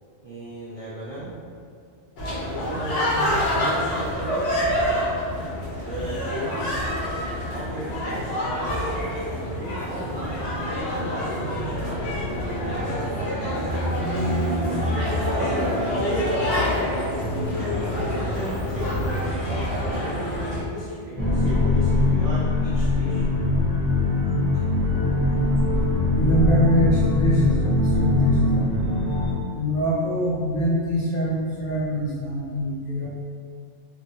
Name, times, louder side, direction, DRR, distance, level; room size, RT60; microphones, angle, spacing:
voice 1, 0.2-1.4 2.3-4.8 5.8-6.7 7.2-8.9 9.5-12.0 12.2-13.0 13.6-14.4 14.7-16.3 17.2-23.3 24.5-24.6, equal, 60° right, -8 dB, 0.3 m, -36 dB
sound 1, 2.2-20.6, equal, 80° left, 1.0 m, -26 dB
sound 2, 21.2-29.3, left 2 dB, 20° left, 0.7 m, -21 dB
voice 2, 26.1-28.7 29.5-33.1, right 1 dB, 55° left, -7 dB, 0.8 m, -24 dB
2.9 x 2.4 x 2.8 m, 2.3 s
omnidirectional pair, 1.2 m